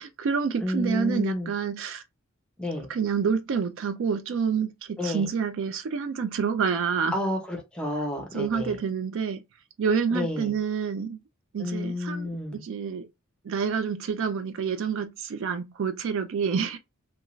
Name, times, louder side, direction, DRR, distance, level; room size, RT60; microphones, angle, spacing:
voice 1, 0.0-2.0 2.9-7.2 8.3-9.4 9.8-11.2 11.5-13.1 13.4-16.8, right 6 dB, 60° right, 0.3 m, -28 dB
voice 2, 0.6-1.5 2.6-2.9 5.0-5.3 7.1-8.8 10.1-10.6 11.6-12.6, left 1 dB, 5° left, 0.7 m, -30 dB
2.4 x 2.3 x 3.0 m
head